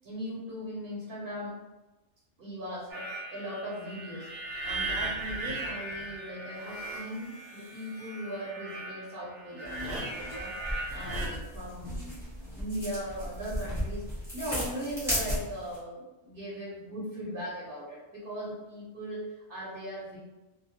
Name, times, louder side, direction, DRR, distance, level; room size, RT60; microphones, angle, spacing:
voice 1, 0.0-1.6 2.4-4.3 4.6-20.2, equal, 60° right, -7 dB, 0.9 m, -39 dB
sound 1, 2.9-11.3, right 2 dB, 85° right, 1.0 m, -38 dB
sound 2, 9.6-15.8, equal, ahead, 1.0 m, -36 dB
2.2 x 2.2 x 2.7 m, 1.1 s
omnidirectional pair, 1.2 m